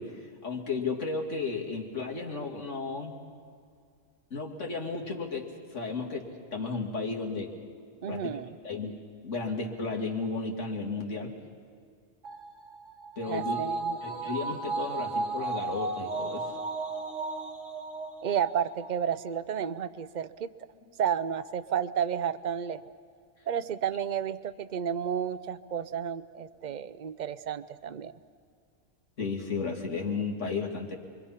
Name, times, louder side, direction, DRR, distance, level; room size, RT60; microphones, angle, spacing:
voice 1, 0.0-3.2 4.3-7.5 8.1-8.3 8.6-9.0 9.2-11.3 13.2-13.6 14.0-16.5 29.2-31.0, left 4 dB, 85° left, 0 dB, 2.8 m, -34 dB
voice 2, 8.0-8.6 13.3-14.3 18.2-20.5 21.0-22.8 23.5-28.2, right 8 dB, 45° right, 14 dB, 0.7 m, -32 dB
sound 1, 12.2-18.9 19.3-19.4, right 3 dB, 90° right, 2.1 m, -34 dB
28.0 x 23.0 x 5.8 m, 2.3 s
omnidirectional pair, 1.2 m